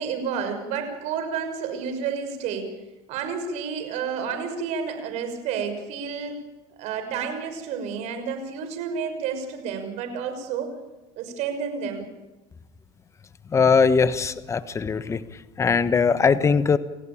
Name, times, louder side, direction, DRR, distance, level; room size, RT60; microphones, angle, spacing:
voice 1, 0.0-2.8 3.1-6.4 6.8-10.7 11.2-12.1, right 6 dB, 60° right, 7 dB, 6.0 m, -30 dB
voice 2, 13.5-15.2 15.6-16.8, left 5 dB, 20° left, 12 dB, 1.3 m, -20 dB
29.5 x 15.5 x 8.8 m, 1.1 s
supercardioid pair, 115°, 13 cm